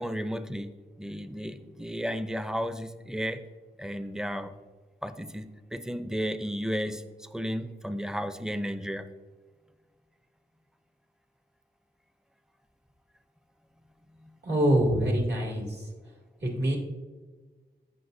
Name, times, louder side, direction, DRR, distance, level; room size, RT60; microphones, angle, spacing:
voice 1, 0.0-3.4 3.8-4.5 5.0-9.1, equal, 5° right, 10 dB, 0.6 m, -33 dB
voice 2, 14.4-15.9 16.4-16.8, right 1 dB, 70° right, -2 dB, 2.5 m, -25 dB
16.0 x 5.9 x 2.7 m, 1.4 s
wide cardioid pair, 65°, 18 cm